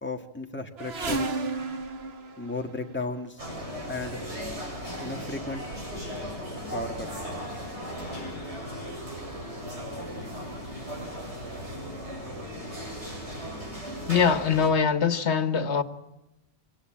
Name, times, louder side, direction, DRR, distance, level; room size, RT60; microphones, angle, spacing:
voice 1, 0.0-1.7 2.4-3.4 3.9-4.2 5.0-5.7 6.7-7.1, left 2 dB, 10° left, 1.8 m, -35 dB
sound 1, 0.8-3.2 4.2-4.4 5.2-5.3 5.5-6.4 6.7-7.3 8.0-8.1 8.4-8.5, right 3 dB, 65° right, 1.9 m, -34 dB
sound 2, 3.4-14.7, equal, 90° right, 7.2 m, -37 dB
voice 2, 14.1-15.8, left 6 dB, 85° left, 1.6 m, -23 dB
25.0 x 18.5 x 8.7 m
omnidirectional pair, 1.1 m